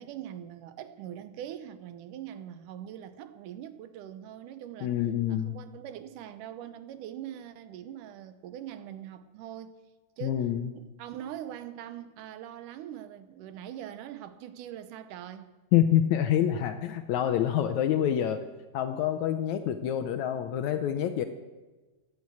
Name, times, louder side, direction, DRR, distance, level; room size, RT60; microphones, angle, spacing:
voice 1, 0.0-4.9 5.3-9.8 10.2-10.5 10.7-15.5, right 10 dB, 75° right, 2.2 m, -42 dB
voice 2, 4.8-5.6 10.2-10.7 15.7-18.4 18.7-21.3, left 10 dB, 75° left, 1.8 m, -27 dB
14.0 x 9.5 x 8.4 m
omnidirectional pair, 3.9 m